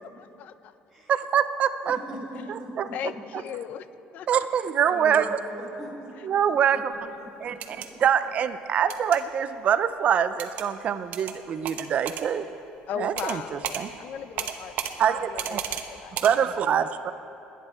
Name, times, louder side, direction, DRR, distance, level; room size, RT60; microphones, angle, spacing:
voice 1, 0.2-0.7 2.9-3.9 4.1-4.3 12.9-14.7 15.3-16.1, left 9 dB, 60° left, 13 dB, 0.7 m, -37 dB
voice 2, 1.1-2.0 2.5-2.8 4.3-5.4 6.2-6.9 7.4-12.5 13.0-13.9 15.0-15.6 16.2-17.1, right 8 dB, 45° right, 11 dB, 0.6 m, -25 dB
voice 3, 1.8-3.2 4.9-6.1 7.4-7.8, equal, 15° left, -5 dB, 4.0 m, -40 dB
sound 1, 7.5-7.9 8.9-9.2 10.4-10.7 11.1-11.3 11.6-12.2 13.2-13.4 13.6-13.8 14.4-14.9 15.4-15.8 16.1-16.3, right 9 dB, 60° right, 1.1 m, -32 dB
29.5 x 10.0 x 4.4 m, 2.9 s
cardioid pair, 130°, 3 cm